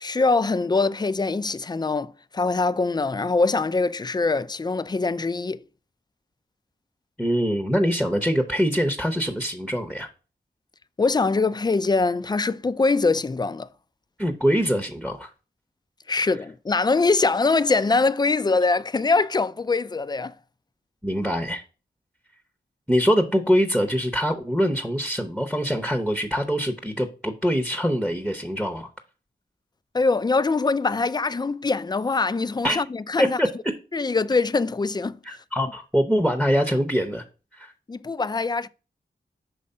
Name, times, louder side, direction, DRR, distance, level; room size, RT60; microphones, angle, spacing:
voice 1, 0.0-5.6 11.0-13.7 16.1-20.3 29.9-33.4 33.9-35.2 37.9-38.7, left 3 dB, 25° left, 0.3 m, -23 dB
voice 2, 7.2-10.1 14.2-15.3 21.0-21.6 22.9-28.9 32.6-32.8 33.2-33.7 35.2-37.2 37.5-37.7, equal, ahead, 0.7 m, -24 dB
5.4 x 3.2 x 5.5 m
cardioid pair, 50°, 18 cm